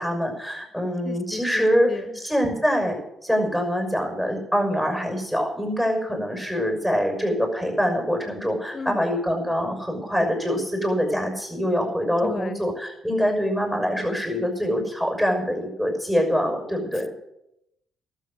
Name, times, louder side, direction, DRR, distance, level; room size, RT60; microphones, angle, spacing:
voice 1, 0.0-3.0 3.2-17.1, equal, 10° right, 3 dB, 6.3 m, -24 dB
voice 2, 1.0-2.2 8.7-9.1 12.2-12.6, left 4 dB, 45° left, 13 dB, 1.2 m, -34 dB
12.0 x 7.7 x 9.6 m, 0.83 s
supercardioid pair, 55°, 0 cm